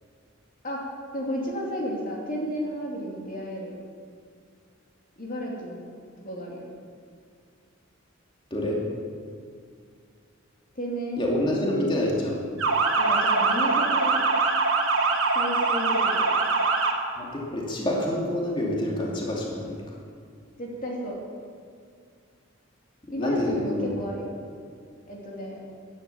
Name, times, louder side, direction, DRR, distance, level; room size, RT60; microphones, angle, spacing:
voice 1, 1.1-3.8 5.2-5.8 6.2-6.7 10.7-11.6 12.9-14.2 15.3-16.4 20.6-21.2 23.1-24.4 25.1-25.6, equal, 40° left, -2 dB, 2.7 m, -32 dB
voice 2, 11.2-12.3 17.2-19.8 23.2-23.9, left 1 dB, 25° left, -3 dB, 2.7 m, -27 dB
Motor vehicle (road) / Siren, 12.6-16.9, right 4 dB, 85° right, 2.3 m, -23 dB
16.0 x 11.5 x 7.0 m, 2.1 s
head